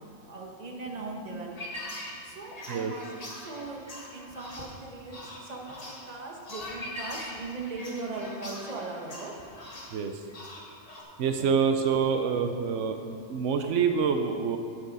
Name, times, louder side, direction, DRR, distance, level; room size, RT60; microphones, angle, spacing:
voice 1, 0.3-1.8 2.2-3.8 4.1-9.5 11.4-11.5, right 3 dB, 35° right, 0 dB, 1.2 m, -39 dB
sound 1, 1.6-11.0, left 1 dB, 35° left, 1.3 m, -42 dB
voice 2, 9.9-10.2 11.2-14.6, right 6 dB, 85° right, 6 dB, 0.9 m, -26 dB
9.0 x 7.4 x 5.4 m, 2.5 s
omnidirectional pair, 1.2 m